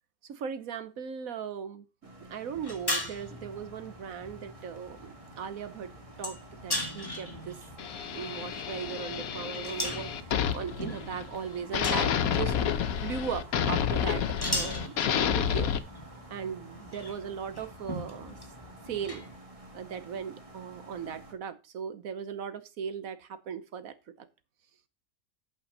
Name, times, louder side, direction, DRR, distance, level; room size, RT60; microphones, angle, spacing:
voice 1, 0.3-1.8 2.3-5.9 6.2-7.6 8.1-15.7 16.3-18.4 18.9-19.2 19.7-24.3, right 7 dB, 75° right, 12 dB, 1.4 m, -38 dB
sound 1, 2.0-21.3, right 2 dB, 25° right, 1.5 m, -51 dB
sound 2, 2.5-19.4, left 1 dB, 15° left, 2.0 m, -40 dB
sound 3, 7.8-11.4 11.7-15.8, left 8 dB, 85° left, 1.2 m, -30 dB
8.7 x 6.3 x 5.4 m, 0.29 s
omnidirectional pair, 1.5 m